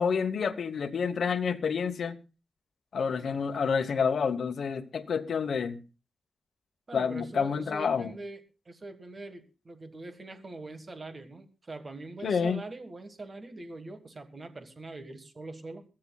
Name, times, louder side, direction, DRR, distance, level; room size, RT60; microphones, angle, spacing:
voice 1, 0.0-2.2 2.9-5.8 6.9-8.1 12.2-12.6, left 6 dB, 70° left, 1.1 m, -28 dB
voice 2, 6.9-15.8, right 2 dB, 35° right, 1.6 m, -43 dB
22.0 x 14.5 x 2.3 m
wide cardioid pair, 140°, 0 cm